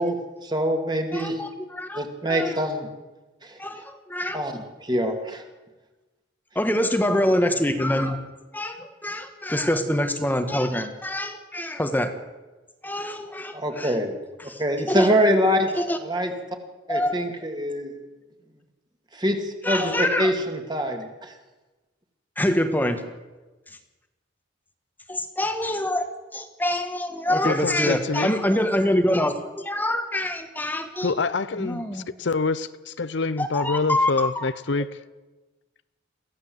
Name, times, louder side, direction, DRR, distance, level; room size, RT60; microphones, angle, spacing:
voice 1, 0.0-1.4 1.9-2.9 3.4-3.6 4.3-4.5 4.8-5.4 13.5-14.2 14.6-15.7 16.0-16.3 16.9-17.9 19.1-21.3, equal, 20° right, 4 dB, 2.4 m, -24 dB
voice 2, 1.1-2.6 3.6-4.5 6.5-8.2 8.5-12.1 12.8-13.9 14.4-14.6 14.9-15.1 15.8-16.0 16.9-17.3 19.6-20.3 22.4-23.0 25.1-26.1 26.3-31.2 31.6-32.0 33.4-34.4, left 1 dB, 10° left, 7 dB, 1.4 m, -25 dB
voice 3, 27.4-28.3 31.0-35.0, left 3 dB, 65° left, 14 dB, 0.7 m, -26 dB
23.0 x 15.5 x 8.0 m, 1.2 s
head